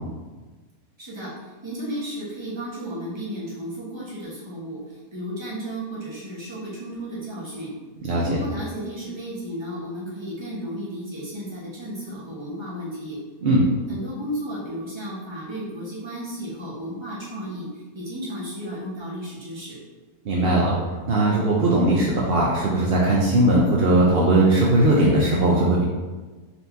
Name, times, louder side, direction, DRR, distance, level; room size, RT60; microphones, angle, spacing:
voice 1, 1.0-1.3 1.6-7.7 8.2-13.2 13.9-17.7 17.9-19.8, equal, 20° right, -6 dB, 0.9 m, -33 dB
voice 2, 20.3-20.7 21.1-25.8, right 1 dB, 70° right, -4 dB, 0.5 m, -19 dB
4.2 x 2.7 x 3.3 m, 1.3 s
omnidirectional pair, 1.6 m